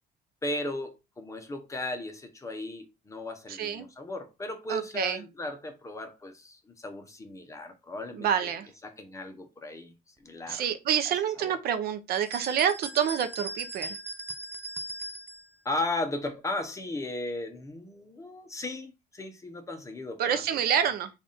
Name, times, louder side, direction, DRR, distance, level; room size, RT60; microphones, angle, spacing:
voice 1, 0.4-8.5 8.8-9.9 10.2-10.7 11.1-11.6 15.6-20.6, left 2 dB, 20° left, 0.8 m, -36 dB
voice 2, 3.5-3.9 4.7-5.2 8.2-8.7 10.5-14.0 20.2-21.1, right 8 dB, 65° right, 0.6 m, -27 dB
sound 1, 12.1-15.5, right 2 dB, 10° right, 0.4 m, -39 dB
3.4 x 2.5 x 4.0 m
cardioid pair, 110°, 17 cm